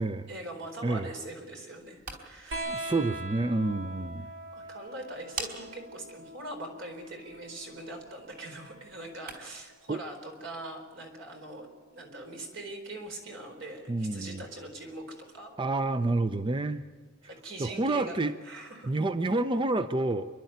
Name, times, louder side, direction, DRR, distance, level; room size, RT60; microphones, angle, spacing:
voice 1, 0.3-2.7 4.5-11.7 11.9-15.6 17.2-18.2 18.4-18.9, right 1 dB, 70° right, 3 dB, 4.3 m, -42 dB
sound 1, 1.7-9.7, right 3 dB, 45° right, 3.8 m, -47 dB
voice 2, 2.5-4.3 9.9-10.0 13.9-14.4 15.6-16.8 17.6-18.3 18.8-20.3, right 2 dB, 25° right, 11 dB, 0.6 m, -29 dB
sound 2, 2.5-9.6 10.9-11.8 13.1-13.2, right 1 dB, 85° right, 3.8 m, -43 dB
29.5 x 11.5 x 9.2 m, 1.4 s
head